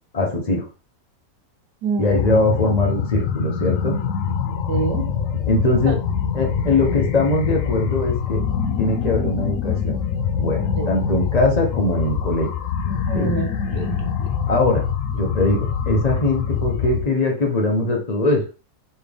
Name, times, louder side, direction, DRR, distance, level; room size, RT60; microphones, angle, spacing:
voice 1, 0.1-0.6 2.0-3.9 5.4-6.0 6.3-8.4 8.8-10.0 10.4-12.5 13.1-13.3 14.5-14.9 15.1-18.4, left 2 dB, 35° left, 1 dB, 0.6 m, -21 dB
voice 2, 1.8-2.4 4.7-5.0 5.9-6.0 10.8-10.9 13.1-14.1, right 4 dB, 75° right, 4 dB, 1.6 m, -26 dB
sound 1, 2.1-17.1, left 7 dB, 75° left, 0.7 m, -24 dB
4.3 x 3.3 x 3.4 m, 0.32 s
omnidirectional pair, 1.9 m